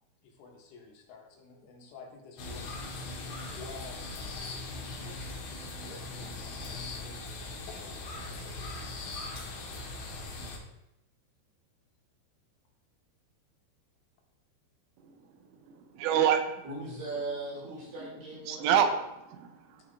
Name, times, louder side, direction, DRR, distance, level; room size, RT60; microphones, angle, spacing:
voice 1, 0.2-3.1 3.5-4.7 5.0-5.3 5.6-7.4 7.8-9.3, left 4 dB, 80° left, 3.9 m, -51 dB
sound 1, 2.4-10.6, left 2 dB, 60° left, 2.9 m, -40 dB
voice 2, 15.0-15.3 15.7-16.6 18.0-18.1 18.5-19.9, right 8 dB, 85° right, 3.4 m, -28 dB
voice 3, 16.6-18.7, right 2 dB, 65° right, 6.2 m, -38 dB
12.5 x 6.0 x 3.6 m
omnidirectional pair, 5.8 m